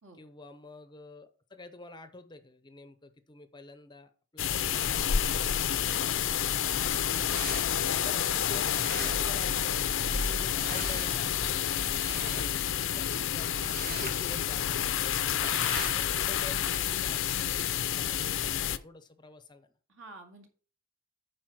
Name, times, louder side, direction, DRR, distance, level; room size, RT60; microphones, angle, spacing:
voice 1, 0.2-7.4 7.9-15.2 15.6-19.7, left 2 dB, 20° left, 10 dB, 0.6 m, -49 dB
sound 1, 4.4-18.8, left 9 dB, 60° left, 0.5 m, -29 dB
sound 2, 5.9-16.1, right 2 dB, 45° right, 1.2 m, -41 dB
voice 2, 6.2-6.9 12.3-12.6 19.9-20.5, right 2 dB, 65° right, 3 dB, 2.3 m, -52 dB
9.3 x 4.7 x 6.0 m, 0.41 s
head